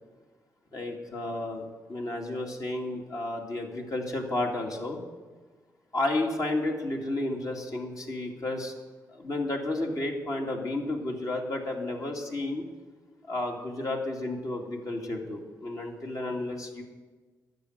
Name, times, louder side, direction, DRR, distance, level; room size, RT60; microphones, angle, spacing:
voice 1, 0.7-5.0 5.9-8.7 9.1-12.6 13.3-16.8, left 2 dB, 50° left, 0 dB, 2.4 m, -32 dB
11.5 x 6.9 x 9.2 m, 1.4 s
supercardioid pair, 55°, 8 cm